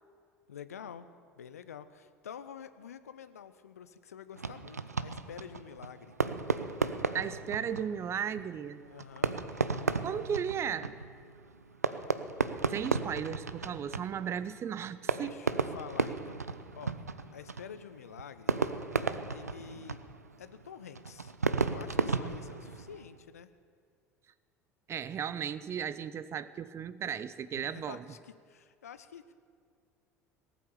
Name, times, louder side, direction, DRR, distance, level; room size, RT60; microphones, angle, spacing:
voice 1, 0.5-6.2 8.9-9.3 15.1-16.4 16.8-17.0 17.3-18.6 19.3-20.0 20.4-21.3 21.6-23.5 27.6-29.3, left 8 dB, 75° left, 12 dB, 0.6 m, -48 dB
Fireworks, 4.4-23.2, right 4 dB, 85° right, 0.5 m, -35 dB
voice 2, 7.1-8.9 10.0-10.9 12.7-15.4 24.9-28.0, right 8 dB, 35° right, 16 dB, 0.6 m, -35 dB
18.0 x 8.5 x 7.0 m, 2.2 s
figure-of-eight pair, 65°, 8 cm